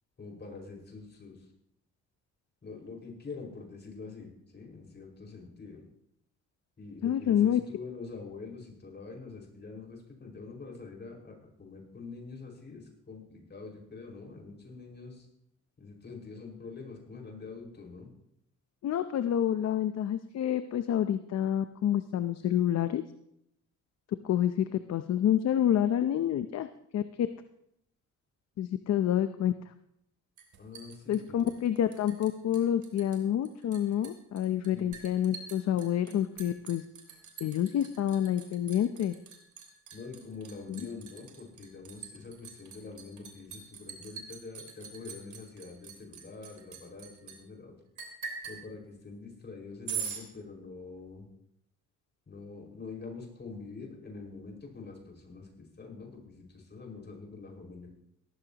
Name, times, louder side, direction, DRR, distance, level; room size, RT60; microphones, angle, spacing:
voice 1, 0.2-1.5 2.6-5.8 6.8-15.3 15.8-18.1 30.6-31.6 34.7-34.9 39.9-47.7 48.5-51.3 52.3-57.9, left 4 dB, 35° left, 0 dB, 5.3 m, -45 dB
voice 2, 7.0-7.6 18.8-23.0 24.2-26.7 26.9-27.3 28.6-29.7 31.1-36.9 37.4-39.1 40.7-40.8, left 10 dB, 60° left, 10 dB, 0.7 m, -28 dB
Liquid, 30.4-32.3 32.5-33.2 33.4-47.4 48.0-48.6 49.9-50.2, right 7 dB, 70° right, 3.1 m, -43 dB
17.5 x 14.5 x 3.0 m, 0.78 s
cardioid pair, 90°, 30 cm